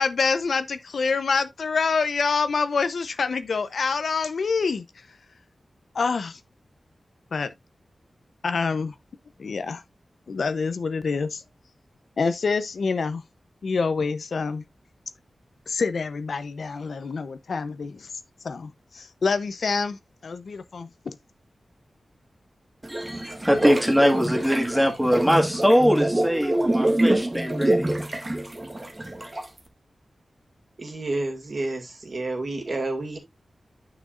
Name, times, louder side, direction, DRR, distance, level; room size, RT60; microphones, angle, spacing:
voice 1, 0.0-4.8 5.9-6.4 7.3-7.5 8.4-8.9 9.4-9.8 10.3-11.4 12.2-13.2 13.6-14.6 15.7-18.1 18.4-21.1, left 4 dB, 75° left, 0.8 m, -26 dB
sound 1, 22.8-29.6, right 1 dB, 25° right, 1.4 m, -26 dB
voice 2, 22.9-27.9, equal, 5° right, 1.9 m, -22 dB
voice 3, 30.8-33.2, right 2 dB, 45° right, 2.3 m, -30 dB
9.3 x 6.0 x 2.5 m
wide cardioid pair, 130°, 0 cm